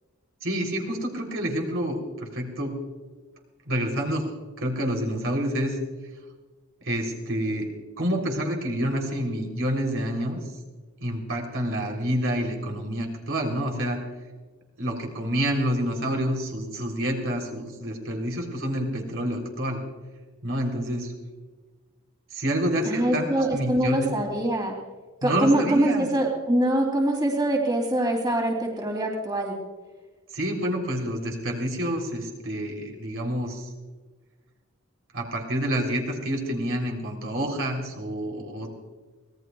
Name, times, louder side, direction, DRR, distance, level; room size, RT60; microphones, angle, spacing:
voice 1, 0.4-2.8 3.7-4.3 4.6-5.8 6.8-7.7 8.0-10.4 11.0-14.0 14.8-19.8 20.4-21.1 22.3-24.1 25.2-26.1 30.3-33.7 35.1-38.7, equal, 60° right, 1 dB, 3.3 m, -28 dB
voice 2, 22.8-24.7 25.2-29.6, right 1 dB, 20° right, 0 dB, 2.8 m, -24 dB
24.5 x 19.0 x 2.3 m, 1.3 s
head